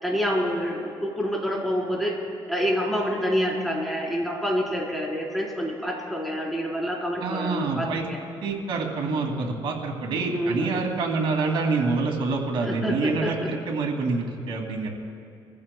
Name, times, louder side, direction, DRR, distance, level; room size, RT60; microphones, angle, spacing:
voice 1, 0.0-2.2 2.5-8.2 10.3-10.8 12.6-13.5, equal, ahead, -4 dB, 4.1 m, -27 dB
voice 2, 7.2-8.0 8.4-14.9, right 3 dB, 70° right, 1 dB, 2.5 m, -26 dB
26.5 x 15.0 x 2.3 m, 2.3 s
cardioid pair, 100°, 9 cm